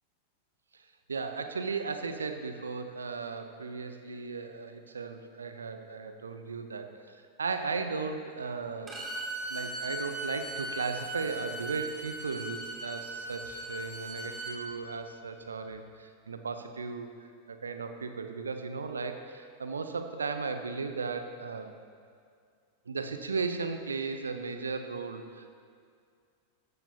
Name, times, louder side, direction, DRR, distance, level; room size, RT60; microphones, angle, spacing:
voice 1, 1.1-9.0 9.5-17.1 17.5-21.7 22.9-25.5, right 4 dB, 75° right, 7 dB, 0.8 m, -36 dB
Bowed string instrument, 8.9-14.6, right 1 dB, 15° right, 2.6 m, -38 dB
13.5 x 13.0 x 2.9 m, 2.2 s
figure-of-eight pair, 90°, 0 cm